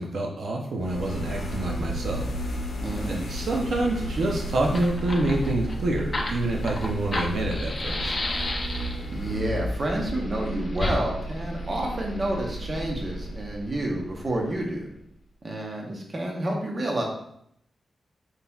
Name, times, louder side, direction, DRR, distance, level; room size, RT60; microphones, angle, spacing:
voice 1, 0.0-2.3 3.1-8.1, right 2 dB, 75° right, 0 dB, 0.6 m, -27 dB
sound 1, 0.8-14.6, equal, 85° left, 0.8 m, -33 dB
voice 2, 2.8-3.2 9.1-14.9 15.4-17.0, right 1 dB, 35° right, 0 dB, 0.9 m, -29 dB
Fire, 4.6-9.1 10.7-11.0, left 2 dB, 30° left, 0.6 m, -31 dB
4.0 x 3.8 x 2.3 m, 0.72 s
wide cardioid pair, 125°, 0 cm